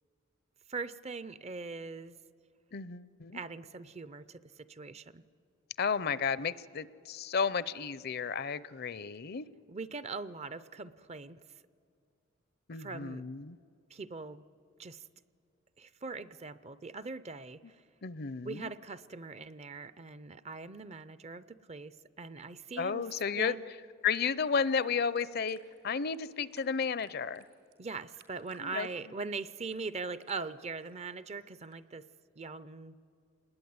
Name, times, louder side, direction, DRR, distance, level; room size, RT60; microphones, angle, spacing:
voice 1, 0.7-2.2 3.3-5.2 9.7-11.4 12.8-13.2 13.9-14.4 14.8-15.1 15.8-17.8 18.4-23.1 23.4-23.6 27.8-32.1 32.4-33.0, right 4 dB, 30° right, 16 dB, 0.5 m, -41 dB
voice 2, 2.7-3.4 5.8-9.5 12.7-13.6 18.0-18.7 22.8-23.6 24.0-25.6 25.8-27.5 28.6-28.9, left 6 dB, 50° left, 17 dB, 0.6 m, -32 dB
sound 1, 24.0-31.8, right 5 dB, 70° right, 3.9 m, -66 dB
27.0 x 20.5 x 9.5 m, 2.3 s
head